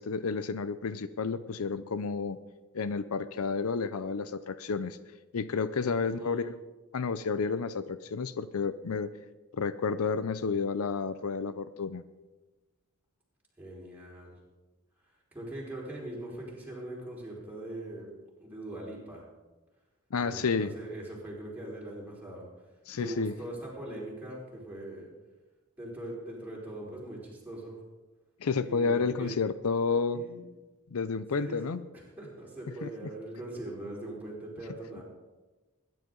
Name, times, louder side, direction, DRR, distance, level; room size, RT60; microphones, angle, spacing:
voice 1, 0.0-2.4 2.7-5.0 5.3-6.6 6.9-9.1 9.5-12.0 20.1-20.7 22.9-23.3 28.4-30.2 30.9-31.8 32.8-32.9, left 5 dB, 70° left, 14 dB, 0.5 m, -31 dB
voice 2, 5.8-6.5 13.6-14.4 15.3-18.1 18.4-19.2 20.2-22.5 23.0-25.1 25.8-27.8 28.6-29.4 30.1-30.4 31.3-31.8 32.2-35.0, right 1 dB, 10° right, -5 dB, 4.5 m, -41 dB
21.5 x 10.5 x 3.9 m, 1.2 s
head